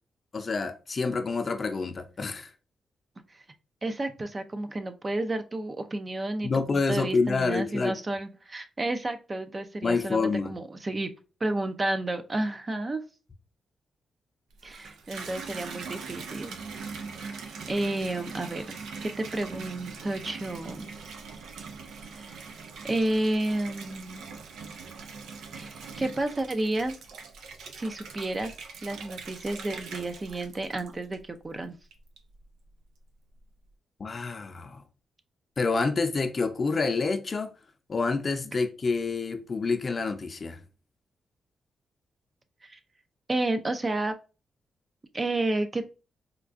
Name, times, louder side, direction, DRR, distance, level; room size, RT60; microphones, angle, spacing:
voice 1, 0.3-2.5 6.4-7.9 9.8-10.6 34.0-34.8 35.6-37.5 37.9-40.6, left 4 dB, 45° left, 0.5 m, -28 dB
voice 2, 3.8-11.1 11.4-13.0 14.6-16.6 17.7-20.9 22.1-22.6 22.8-24.2 25.5-27.0 27.8-28.5 28.8-31.8 42.7-42.8 43.3-44.1 45.1-46.0, right 2 dB, 30° right, 0.5 m, -31 dB
Water tap faucet / Bathtub (filling or washing), 14.5-31.4 31.9-32.5, right 5 dB, 90° right, 0.4 m, -42 dB
4.4 x 2.3 x 2.4 m
cardioid pair, 70°, 0 cm